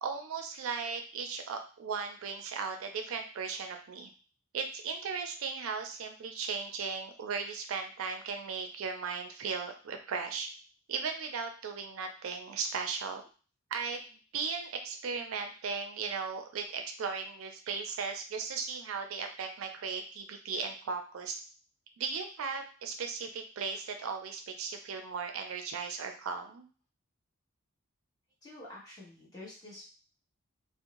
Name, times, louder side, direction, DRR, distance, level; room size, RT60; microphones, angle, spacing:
voice 1, 0.0-4.1 4.5-10.5 10.9-13.2 13.7-14.0 14.3-21.4 22.0-26.7, right 5 dB, 80° right, 5 dB, 0.4 m, -37 dB
voice 2, 28.4-29.8, left 2 dB, 20° left, -7 dB, 1.1 m, -48 dB
2.5 x 2.0 x 2.9 m, 0.37 s
head